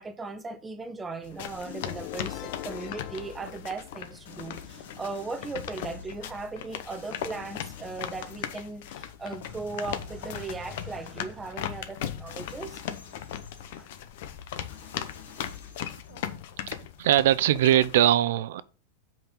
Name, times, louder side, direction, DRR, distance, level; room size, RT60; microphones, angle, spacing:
voice 1, 0.0-12.8 13.8-13.9, right 3 dB, 10° right, 0.7 m, -38 dB
sound 1, 1.2-18.0, left 10 dB, 60° left, 0.9 m, -38 dB
sound 2, 1.5-3.5 4.3-6.3 6.9-8.8 9.4-11.7 12.3-14.0 14.7-16.3, left 6 dB, 85° left, 2.4 m, -49 dB
sound 3, 1.7-4.5, left 17 dB, 40° left, 0.3 m, -42 dB
voice 2, 17.0-18.6, right 12 dB, 70° right, 0.5 m, -21 dB
5.8 x 5.2 x 5.5 m
supercardioid pair, 160°, 0 cm